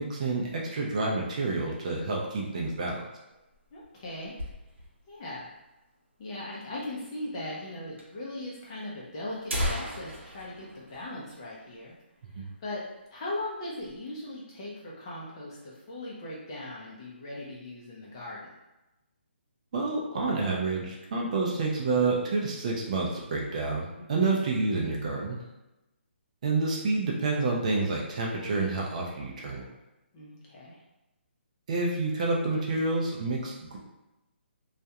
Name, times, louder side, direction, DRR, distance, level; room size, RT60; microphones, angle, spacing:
voice 1, 0.0-3.0 12.4-12.5 19.7-25.4 26.4-29.7 31.7-33.8, right 3 dB, 35° right, -2 dB, 0.4 m, -29 dB
sound 1, 3.3-5.1 5.4-5.5 5.7-5.8 6.5-6.6 7.5-7.7 8.0-8.1 8.8-8.9 9.3-11.9 12.2-12.3 12.7-13.0 13.4-14.0, equal, 85° right, 0.7 m, -36 dB
voice 2, 3.7-4.4 5.1-5.5 6.2-12.0 12.4-12.8 13.1-18.4 24.0-24.4 30.1-30.8, left 1 dB, 25° left, -5 dB, 0.6 m, -39 dB
2.4 x 2.1 x 2.8 m, 0.98 s
hypercardioid pair, 165°, 6 cm